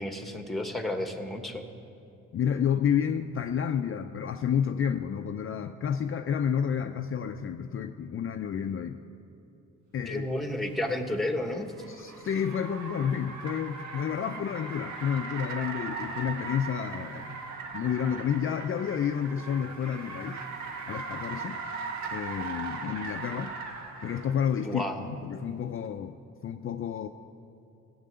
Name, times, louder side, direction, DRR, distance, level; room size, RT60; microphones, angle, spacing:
voice 1, 0.0-1.6 10.1-11.7 24.6-25.0, left 1 dB, ahead, 6 dB, 1.2 m, -31 dB
voice 2, 2.3-9.0 9.9-10.3 11.9-17.4 17.7-20.4 20.9-21.6 22.1-23.6 24.0-26.2 26.4-27.1, left 8 dB, 45° left, 6 dB, 0.5 m, -30 dB
Car, 10.5-24.5, right 4 dB, 65° right, 1.5 m, -39 dB
16.0 x 8.7 x 6.8 m, 2.7 s
cardioid pair, 90°, 30 cm